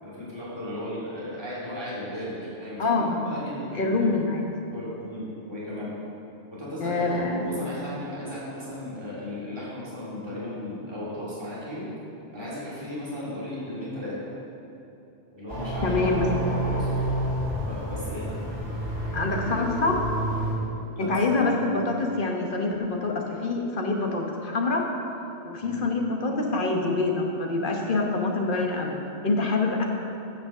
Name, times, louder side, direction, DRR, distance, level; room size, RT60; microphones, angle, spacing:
voice 1, 0.0-4.1 4.7-5.9 6.5-7.2 7.4-11.9 12.3-14.3 15.3-17.0 17.6-18.3 21.0-21.5 25.6-25.8, left 1 dB, 20° right, -9 dB, 2.6 m, -35 dB
voice 2, 3.8-4.5 6.8-7.4 15.8-16.5 19.1-20.0 21.0-24.8 25.4-28.9 29.2-29.8, left 3 dB, 50° left, 1 dB, 1.2 m, -25 dB
sound 1, 15.5-20.5, right 1 dB, 80° right, 3.1 m, -29 dB
9.1 x 6.1 x 6.5 m, 2.9 s
omnidirectional pair, 1.2 m